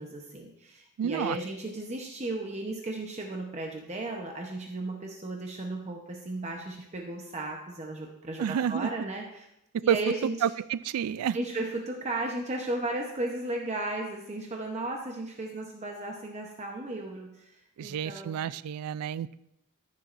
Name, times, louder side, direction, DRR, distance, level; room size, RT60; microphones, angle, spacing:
voice 1, 0.0-9.5 9.8-10.5 11.3-17.6 17.8-18.4, right 2 dB, 30° right, 1 dB, 0.8 m, -35 dB
voice 2, 1.0-1.4 8.4-8.9 9.7-10.0 10.4-11.4 17.8-19.3, right 8 dB, 85° right, 17 dB, 0.3 m, -29 dB
14.0 x 7.4 x 2.6 m, 0.84 s
head